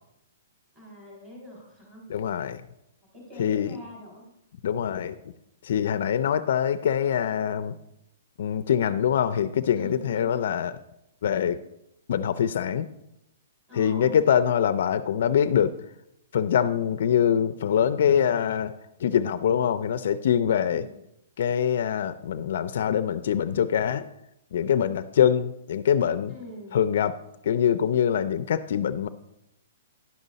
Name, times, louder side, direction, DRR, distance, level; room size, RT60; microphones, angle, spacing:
voice 1, 0.7-2.1 3.1-4.3 9.7-10.5 13.7-14.2 20.7-20.9 26.3-26.8, left 1 dB, 20° right, -3 dB, 3.4 m, -44 dB
voice 2, 2.1-2.6 3.4-3.8 4.6-5.1 5.6-7.8 8.4-10.7 11.2-11.6 12.1-12.9 13.7-15.8 16.3-18.7 19.0-20.8 21.4-24.0 24.5-26.3 26.7-27.1 27.4-29.1, left 8 dB, 55° left, 13 dB, 0.4 m, -24 dB
10.5 x 6.5 x 4.0 m, 0.83 s
hypercardioid pair, 170°, 0 cm